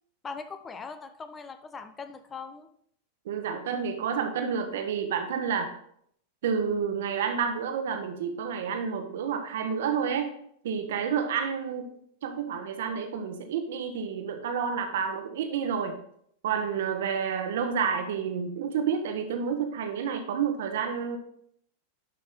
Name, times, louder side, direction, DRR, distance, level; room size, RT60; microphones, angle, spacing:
voice 1, 0.2-2.7, left 5 dB, 20° left, 9 dB, 0.8 m, -40 dB
voice 2, 3.2-5.7 6.4-10.3 10.6-11.9 12.2-16.0 16.4-21.2, right 7 dB, 55° right, 6 dB, 1.3 m, -29 dB
11.5 x 5.6 x 3.9 m, 0.68 s
figure-of-eight pair, 90°, 0 cm